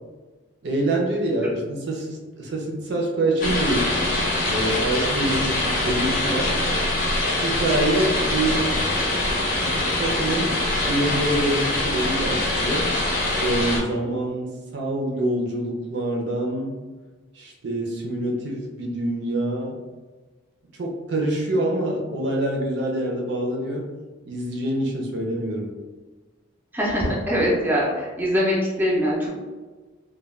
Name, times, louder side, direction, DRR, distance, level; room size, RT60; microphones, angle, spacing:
voice 1, 0.6-4.0 4.5-6.5 7.4-8.8 9.6-12.9 13.4-16.7 17.3-19.8 20.8-23.9 24.3-25.7, right 1 dB, 60° right, -1 dB, 0.5 m, -26 dB
sound 1, 3.4-13.8, left 1 dB, 45° left, 0.6 m, -24 dB
voice 2, 26.7-29.3, equal, 10° right, -6 dB, 0.5 m, -22 dB
2.3 x 2.2 x 3.1 m, 1.3 s
head